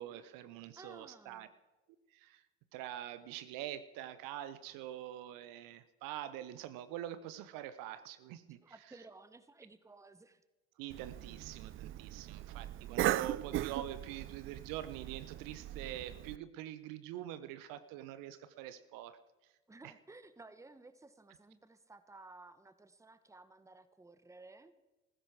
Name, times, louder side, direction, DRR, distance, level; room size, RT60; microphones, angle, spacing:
voice 1, 0.0-1.5 2.1-2.4 2.7-8.6 10.8-19.2 19.8-19.9, right 12 dB, 60° right, 14 dB, 0.9 m, -45 dB
voice 2, 0.8-1.5 8.6-10.4 19.7-24.7, right 3 dB, 10° right, 13 dB, 1.0 m, -56 dB
Cough, 10.9-16.4, right 13 dB, 35° right, 0.4 m, -38 dB
19.0 x 15.0 x 4.7 m, 1.1 s
figure-of-eight pair, 60°, 38 cm